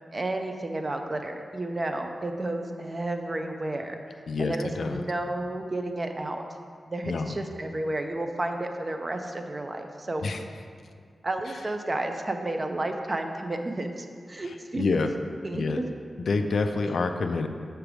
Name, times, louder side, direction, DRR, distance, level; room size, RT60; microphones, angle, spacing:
voice 1, 0.1-4.0 4.4-6.4 6.9-10.2 11.2-14.9 15.4-15.9 16.8-16.9, right 2 dB, 30° right, 5 dB, 0.5 m, -31 dB
voice 2, 4.3-5.0 7.0-7.4 10.2-10.4 14.5-15.1 15.5-15.8 16.2-17.5, left 3 dB, 75° left, 6 dB, 0.4 m, -27 dB
6.9 x 3.3 x 6.0 m, 2.1 s
wide cardioid pair, 145°, 0 cm